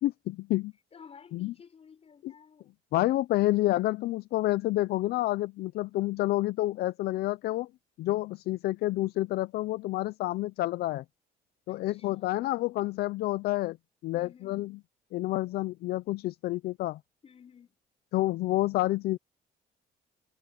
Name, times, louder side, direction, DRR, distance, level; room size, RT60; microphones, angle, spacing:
voice 1, 0.0-0.7 1.3-1.5 2.2-2.3 2.9-7.7 8.0-11.0 11.7-13.8 14.0-14.7 15.1-17.0 18.1-19.2, left 16 dB, 70° left, 0.5 m, -29 dB
voice 2, 0.9-2.7 11.7-12.4 14.1-14.7 17.2-17.8, left 6 dB, 35° left, 5.7 m, -54 dB
cardioid pair, 110°, 17 cm